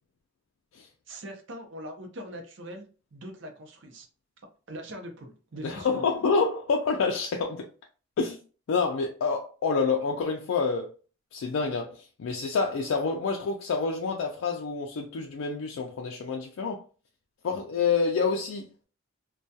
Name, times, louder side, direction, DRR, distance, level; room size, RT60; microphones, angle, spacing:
voice 1, 1.1-4.1 4.7-6.1, right 1 dB, 65° right, 0.6 m, -42 dB
voice 2, 5.6-7.7 8.2-8.4 8.7-10.9 11.3-16.8 17.4-18.8, left 4 dB, 90° left, 0.4 m, -28 dB
2.2 x 2.2 x 2.6 m
head